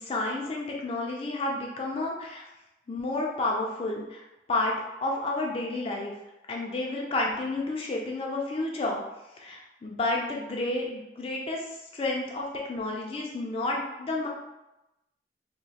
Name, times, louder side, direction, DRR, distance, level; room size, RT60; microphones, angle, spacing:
voice 1, 0.0-2.4 2.9-4.2 4.5-4.7 5.0-6.1 6.5-9.0 9.4-11.6 11.9-14.3, left 2 dB, 30° left, -1 dB, 0.3 m, -30 dB
2.9 x 2.1 x 2.7 m, 0.96 s
head